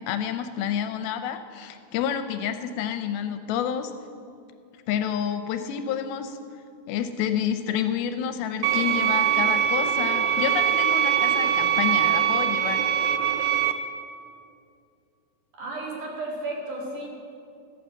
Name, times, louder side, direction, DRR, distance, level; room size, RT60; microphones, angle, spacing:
voice 1, 0.0-3.9 4.9-6.4 6.9-12.8, left 9 dB, 80° left, 9 dB, 2.3 m, -29 dB
sound 1, 8.6-13.7, right 9 dB, 80° right, 2.4 m, -22 dB
voice 2, 15.5-17.1, right 2 dB, 55° right, -2 dB, 3.4 m, -33 dB
14.5 x 9.1 x 7.2 m, 2.4 s
omnidirectional pair, 4.5 m